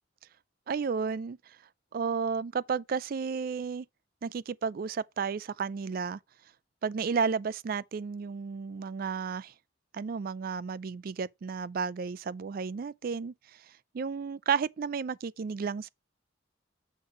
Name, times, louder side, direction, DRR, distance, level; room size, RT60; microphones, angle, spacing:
voice 1, 0.7-1.4 1.9-3.9 4.2-6.2 6.8-9.5 9.9-13.3 13.9-15.9, right 5 dB, 50° right, 0.4 m, -32 dB
6.6 x 6.3 x 4.6 m
head